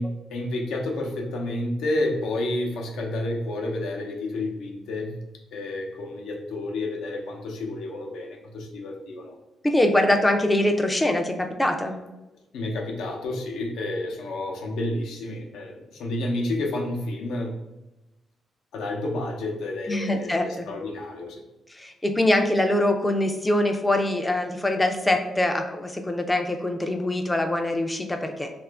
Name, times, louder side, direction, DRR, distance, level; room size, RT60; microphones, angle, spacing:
voice 1, 0.0-5.1 5.5-9.4 12.5-17.5 18.7-21.4, left 1 dB, 85° left, 1 dB, 0.6 m, -30 dB
voice 2, 9.6-11.3 11.6-12.0 19.9-20.6 21.7-28.5, left 1 dB, 10° left, 5 dB, 0.3 m, -23 dB
2.9 x 2.4 x 3.3 m, 0.99 s
cardioid pair, 155°, 0 cm